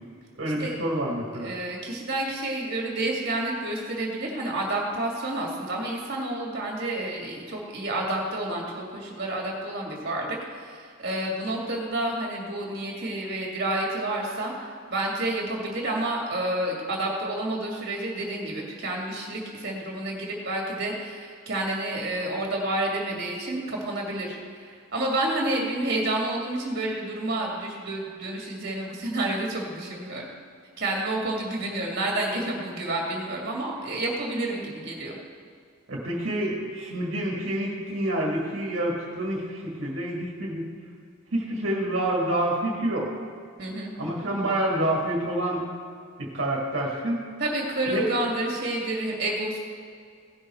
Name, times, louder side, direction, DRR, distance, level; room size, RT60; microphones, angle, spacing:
voice 1, 0.4-1.5 35.9-40.6 41.3-43.1 44.0-45.7 46.2-47.2 47.9-48.0, right 1 dB, 70° right, -3 dB, 1.7 m, -28 dB
voice 2, 1.4-30.3 30.8-35.2 43.6-43.9 47.4-49.6, right 1 dB, 50° right, -2 dB, 2.2 m, -29 dB
16.5 x 6.3 x 4.4 m, 2.2 s
head